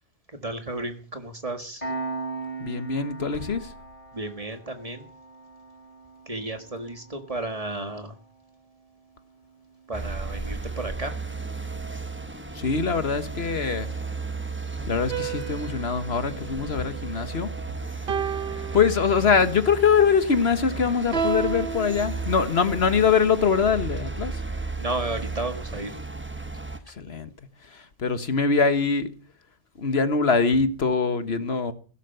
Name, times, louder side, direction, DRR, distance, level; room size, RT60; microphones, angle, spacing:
voice 1, 0.3-1.9 4.1-5.1 6.3-8.1 9.9-11.1 24.8-26.0, right 2 dB, 30° right, 1.9 m, -33 dB
Piano, 1.8-12.9, right 3 dB, 30° left, 4.3 m, -41 dB
voice 2, 2.6-3.7 12.5-13.9 14.9-17.5 18.5-24.4 26.9-27.3 27.6-29.1 29.8-31.7, left 5 dB, 65° left, 1.5 m, -23 dB
sound 1, 9.9-26.8, right 3 dB, 10° right, 1.2 m, -34 dB
sound 2, 15.1-17.5 18.1-19.6 21.1-22.8, right 6 dB, 60° right, 1.2 m, -33 dB
16.5 x 11.5 x 6.7 m
omnidirectional pair, 1.1 m